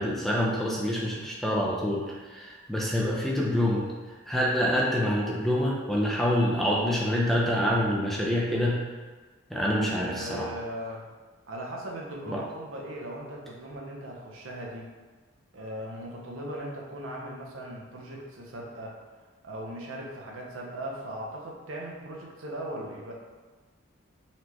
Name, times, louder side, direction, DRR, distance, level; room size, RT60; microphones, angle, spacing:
voice 1, 0.0-3.9 4.3-8.8 9.5-10.5 12.3-12.4, equal, ahead, -4 dB, 0.5 m, -26 dB
voice 2, 10.0-11.0 11.5-14.9 15.5-18.9 19.4-23.1, right 1 dB, 90° right, -1 dB, 0.8 m, -38 dB
4.2 x 3.2 x 2.9 m, 1.4 s
head